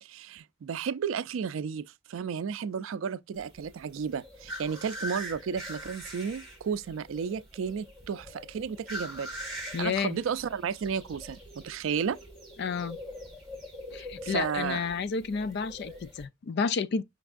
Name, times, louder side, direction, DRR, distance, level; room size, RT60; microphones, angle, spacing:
voice 1, 0.0-9.3 9.8-12.2 14.2-14.8, right 6 dB, 75° right, 0.4 m, -33 dB
sound 1, 3.4-16.2, equal, ahead, 2.2 m, -43 dB
voice 2, 9.7-10.2 12.6-13.0 13.9-17.0, left 5 dB, 55° left, 0.4 m, -31 dB
5.2 x 3.4 x 2.4 m
head